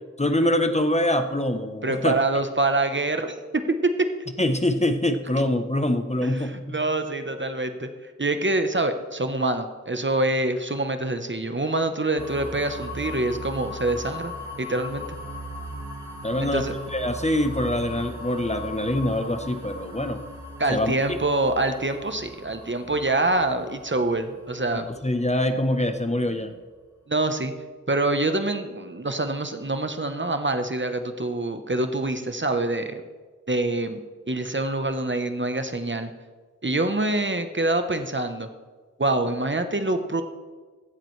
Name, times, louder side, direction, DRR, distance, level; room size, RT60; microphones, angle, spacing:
voice 1, 0.2-2.2 4.4-6.8 16.2-20.2 20.7-21.2 24.9-26.5, left 1 dB, 20° left, 7 dB, 0.9 m, -24 dB
voice 2, 1.8-4.1 6.2-7.9 8.2-14.3 14.6-15.1 16.4-16.7 20.6-24.9 27.1-27.5 27.9-33.0 33.5-34.0 34.3-36.1 36.6-38.5 39.0-40.2, right 2 dB, 40° right, 8 dB, 0.9 m, -25 dB
sound 1, 12.2-26.0, equal, 65° right, 2.4 m, -38 dB
16.0 x 11.5 x 3.2 m, 1.4 s
wide cardioid pair, 40°, 31 cm